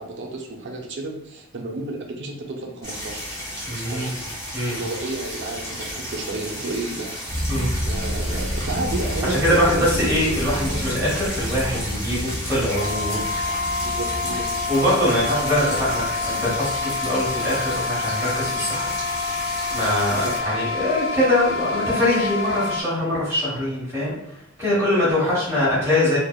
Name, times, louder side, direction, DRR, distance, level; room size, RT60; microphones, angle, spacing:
voice 1, 0.0-3.4 3.6-4.2 4.7-7.1 7.9-10.2 10.6-10.9 13.8-14.6 15.2-15.3 20.1-20.4 24.7-24.8, right 2 dB, 60° right, 2 dB, 0.5 m, -32 dB
sound 1, 2.8-20.4, equal, 15° left, 0.9 m, -33 dB
voice 2, 3.7-4.1 4.5-4.8 7.5-7.7 9.3-13.2 14.7-18.9 19.7-24.1 24.6-26.2, left 1 dB, 15° right, -8 dB, 1.3 m, -23 dB
sound 2, 7.3-17.9, equal, 35° right, 1.0 m, -31 dB
sound 3, 12.7-22.8, left 4 dB, 75° left, 0.4 m, -27 dB
3.2 x 2.1 x 2.3 m, 0.78 s
head